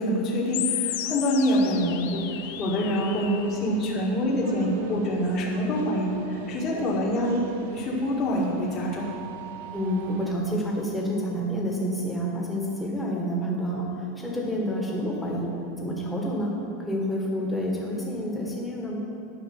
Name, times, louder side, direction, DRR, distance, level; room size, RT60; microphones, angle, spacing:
voice 1, 0.0-7.4 7.7-9.1, equal, 30° left, -4 dB, 1.9 m, -26 dB
sound 1, 0.5-3.5, left 12 dB, 65° left, 0.6 m, -33 dB
sound 2, 1.7-10.3, right 6 dB, 70° right, 0.8 m, -43 dB
voice 2, 9.7-15.5 15.8-19.1, equal, 5° left, -3 dB, 1.7 m, -29 dB
10.5 x 5.3 x 6.5 m, 2.6 s
supercardioid pair, 150°, 0 cm